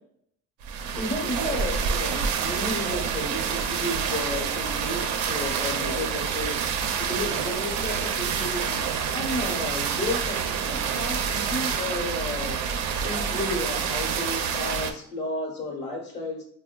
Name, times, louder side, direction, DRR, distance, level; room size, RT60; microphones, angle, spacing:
sound 1, 0.6-14.9, right 6 dB, 75° right, 0.5 m, -28 dB
voice 1, 1.0-8.8 9.1-12.6 12.9-16.4, left 1 dB, 35° left, 0 dB, 1.0 m, -33 dB
5.0 x 2.1 x 2.2 m, 0.67 s
cardioid pair, 140°, 29 cm